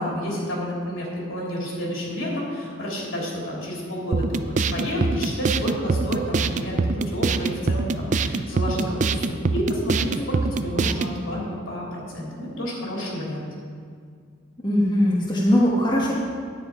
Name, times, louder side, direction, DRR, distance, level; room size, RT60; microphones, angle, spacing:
voice 1, 0.0-4.4 4.7-13.4, equal, 70° left, -4 dB, 3.4 m, -30 dB
sound 1, 4.1-11.2, right 3 dB, 35° right, 0.4 m, -24 dB
voice 2, 14.6-16.1, equal, 20° left, -5 dB, 1.3 m, -20 dB
10.0 x 9.5 x 5.0 m, 2.1 s
head